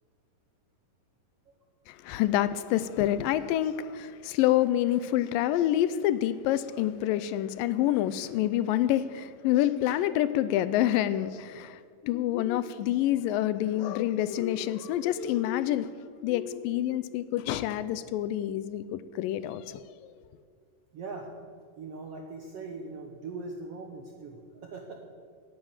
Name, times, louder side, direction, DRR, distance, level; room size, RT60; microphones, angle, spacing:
voice 1, 1.9-15.9 16.2-20.1, left 12 dB, 80° left, 15 dB, 2.2 m, -27 dB
voice 2, 20.9-21.3 21.8-25.0, right 3 dB, 65° right, 3 dB, 1.5 m, -41 dB
18.0 x 10.5 x 7.3 m, 2.1 s
omnidirectional pair, 4.1 m